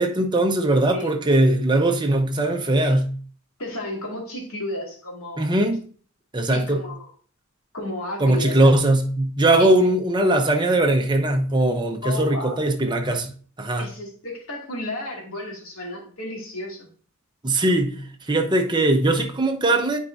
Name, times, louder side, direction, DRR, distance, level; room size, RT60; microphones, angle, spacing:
voice 1, 0.0-3.1 5.4-5.8 6.3-6.8 8.2-13.3 13.6-13.9 17.4-18.0 18.3-20.0, right 1 dB, 20° right, 0.8 m, -20 dB
voice 2, 3.6-5.6 6.5-7.1 7.7-8.7 9.6-9.9 12.0-12.6 13.8-16.9, left 1 dB, 80° left, 2.5 m, -33 dB
8.9 x 4.7 x 2.6 m
head